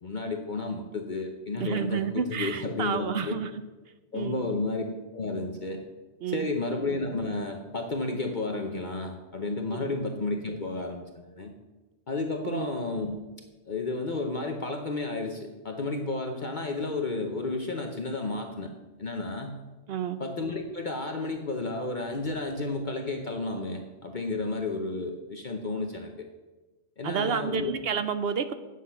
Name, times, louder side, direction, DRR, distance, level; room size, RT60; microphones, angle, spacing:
voice 1, 0.0-3.4 4.1-4.8 5.1-5.8 6.3-11.5 12.1-13.2 13.7-18.7 19.0-19.6 20.2-26.3 27.0-27.7, left 3 dB, 45° left, 3 dB, 0.9 m, -32 dB
voice 2, 1.6-3.5 4.1-4.6 6.2-6.5 9.8-9.9 12.4-12.7 19.9-20.2 27.0-28.5, right 7 dB, 60° right, 11 dB, 0.8 m, -30 dB
9.4 x 7.9 x 5.7 m, 1.1 s
omnidirectional pair, 1.2 m